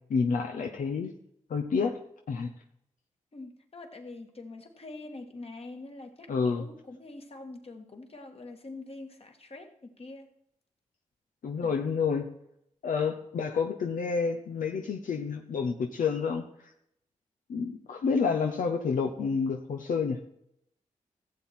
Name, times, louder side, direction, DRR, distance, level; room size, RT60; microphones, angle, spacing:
voice 1, 0.1-1.1 1.5-2.0 2.3-2.5 6.3-6.7 11.4-12.3 12.8-16.4 17.5-20.2, left 5 dB, 80° left, 3 dB, 0.8 m, -29 dB
voice 2, 3.3-10.3 11.6-11.8, left 2 dB, 45° left, 4 dB, 2.0 m, -45 dB
15.5 x 7.6 x 4.4 m, 0.75 s
cardioid pair, 55°, 14 cm